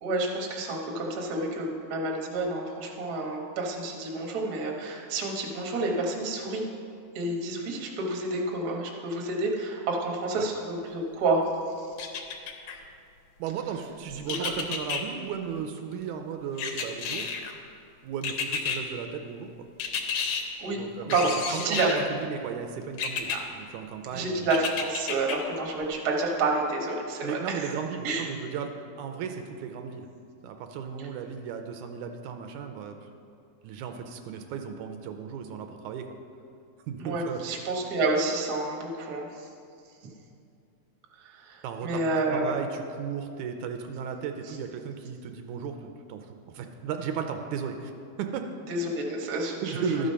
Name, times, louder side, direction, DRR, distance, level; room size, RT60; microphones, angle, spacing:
voice 1, 0.0-6.6 7.1-11.4 11.8-11.9 14.4-14.5 20.6-20.8 21.1-22.0 23.3-23.4 24.1-27.8 28.0-28.2 37.0-39.5 41.2-42.5 48.7-50.1, right 2 dB, 60° right, -1 dB, 1.0 m, -29 dB
sound 1, 12.0-12.8 14.3-15.0 16.6-17.5 18.2-18.8 19.8-20.4 21.1-22.1 23.0-23.4 24.5-25.4 25.8-25.9, left 6 dB, 70° left, 1.6 m, -31 dB
voice 2, 13.4-17.3 18.0-19.7 20.7-24.5 27.2-28.7 29.0-30.1 30.4-33.0 33.6-36.1 36.9-37.4 41.6-42.0 42.3-47.9 48.2-48.4 49.6-50.1, right 7 dB, 80° right, 6 dB, 2.0 m, -35 dB
12.5 x 5.1 x 5.5 m, 2.4 s
omnidirectional pair, 3.5 m